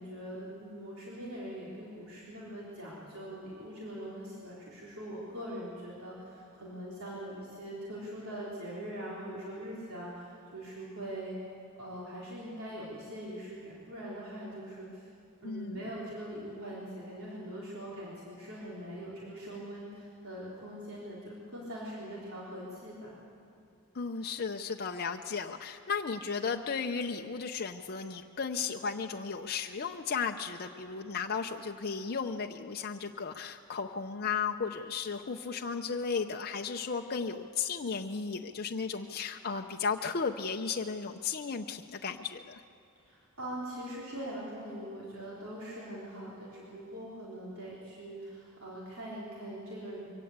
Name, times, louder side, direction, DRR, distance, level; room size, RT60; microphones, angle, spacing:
voice 1, 0.0-11.4 11.8-15.1 15.4-23.2 43.0-50.1, right 1 dB, 70° right, -6 dB, 4.1 m, -42 dB
voice 2, 15.4-15.8 23.9-42.6, left 5 dB, 45° left, 3 dB, 0.6 m, -35 dB
23.5 x 17.0 x 8.1 m, 2.5 s
head